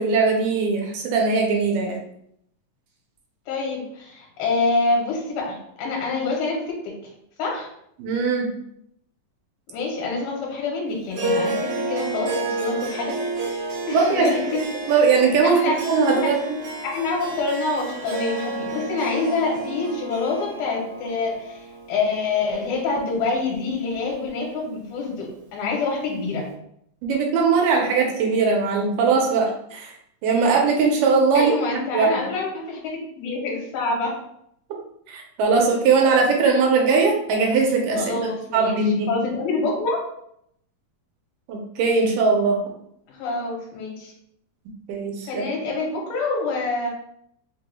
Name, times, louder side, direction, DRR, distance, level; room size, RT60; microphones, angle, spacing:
voice 1, 0.0-2.0 8.0-8.5 13.9-14.3 14.9-15.6 15.9-16.6 27.0-29.9 30.2-32.1 35.1-39.1 41.5-42.6 44.9-45.4, right 4 dB, 85° right, 0 dB, 2.3 m, -20 dB
voice 2, 3.5-6.9 7.4-7.7 9.7-13.2 13.9-14.4 15.4-15.8 16.1-16.3 16.8-26.5 31.3-34.1 37.9-38.8 39.1-40.0 43.1-44.1 45.2-46.9, left 3 dB, 75° left, -2 dB, 2.2 m, -26 dB
Harp, 11.1-23.7, right 2 dB, 70° right, 2.1 m, -31 dB
5.1 x 2.2 x 3.1 m, 0.72 s
omnidirectional pair, 3.8 m